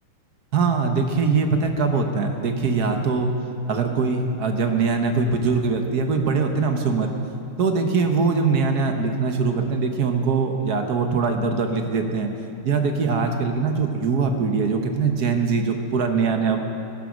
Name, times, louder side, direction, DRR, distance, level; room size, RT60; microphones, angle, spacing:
voice 1, 0.5-3.3 3.7-7.1 7.6-12.3 12.6-16.6, right 4 dB, 55° right, 5 dB, 1.3 m, -22 dB
15.5 x 11.0 x 6.3 m, 2.6 s
omnidirectional pair, 2.4 m